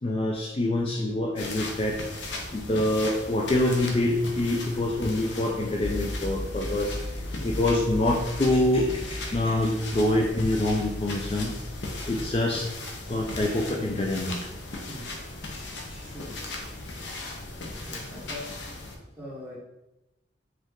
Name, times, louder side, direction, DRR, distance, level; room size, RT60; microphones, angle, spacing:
voice 1, 0.0-2.0 2.5-11.5 12.1-12.7 13.1-14.4 15.5-15.6 15.9-16.0, left 1 dB, 30° left, -1 dB, 0.4 m, -26 dB
sound 1, 1.4-19.0, left 2 dB, 80° left, 0.7 m, -38 dB
sound 2, 5.8-12.3, left 1 dB, 60° right, 1.5 m, -37 dB
voice 2, 16.0-16.4 17.7-18.6 19.2-19.6, left 1 dB, 10° right, -7 dB, 1.4 m, -42 dB
5.2 x 2.4 x 3.6 m, 0.94 s
head